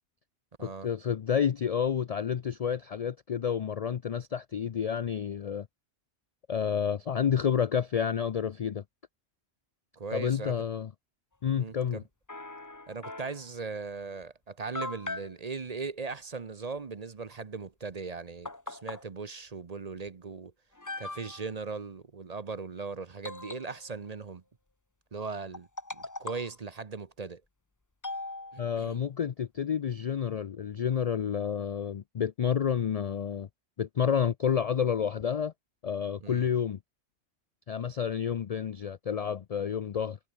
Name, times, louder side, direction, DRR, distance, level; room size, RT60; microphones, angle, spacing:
voice 1, 0.6-5.7 6.5-8.8 10.1-10.9 11.4-12.0 28.6-33.5 33.8-35.5 35.8-36.8 37.7-40.2, left 8 dB, 70° left, 0.3 m, -29 dB
voice 2, 10.0-10.5 11.6-12.0 12.9-20.5 21.0-24.4 25.1-27.4 28.5-29.0 36.2-36.5, right 4 dB, 35° right, 0.9 m, -39 dB
sound 1, 12.3-13.5 14.2-14.3 14.7-15.3 17.9-18.0 18.4-19.0 20.1-20.2 20.7-21.5 23.2-24.1 25.5-26.6 28.0-28.9, left 2 dB, 15° left, 1.1 m, -40 dB
omnidirectional pair, 1.3 m